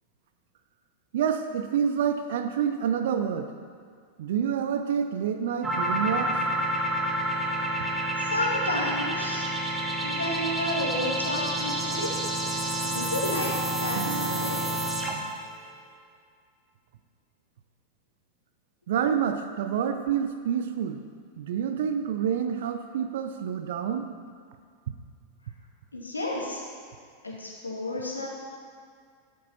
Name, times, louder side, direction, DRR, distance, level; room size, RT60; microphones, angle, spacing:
voice 1, 1.1-3.5 4.2-6.5 13.9-14.9 18.9-21.0 21.4-24.1, right 8 dB, 55° right, 8 dB, 0.7 m, -28 dB
sound 1, 5.6-15.3, right 1 dB, 10° right, 1.4 m, -29 dB
voice 2, 8.2-9.4 10.0-12.1 12.8-14.6 25.9-26.6 27.2-28.3, left 1 dB, 80° left, -2 dB, 2.3 m, -31 dB
12.0 x 11.5 x 4.2 m, 2.1 s
figure-of-eight pair, 90°, 0 cm